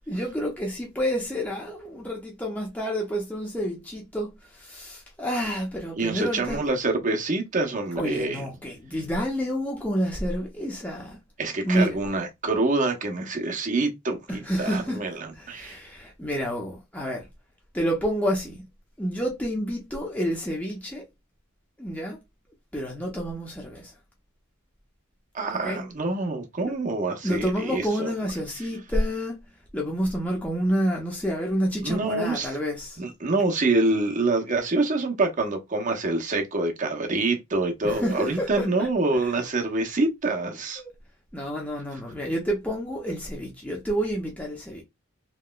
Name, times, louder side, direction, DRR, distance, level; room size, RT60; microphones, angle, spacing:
voice 1, 0.1-6.6 8.0-11.2 11.6-12.0 14.3-15.0 15.4-17.3 17.7-18.6 19.0-21.0 21.8-22.2 22.7-23.9 25.5-25.8 26.7-26.8 27.2-33.0 37.8-38.9 39.2-39.3 40.8-40.9 41.3-44.8, equal, 5° left, 0.6 m, -29 dB
voice 2, 6.0-8.4 11.4-15.8 25.3-28.1 31.8-32.6 33.0-40.8, right 2 dB, 35° right, 0.7 m, -26 dB
2.9 x 2.9 x 2.2 m
head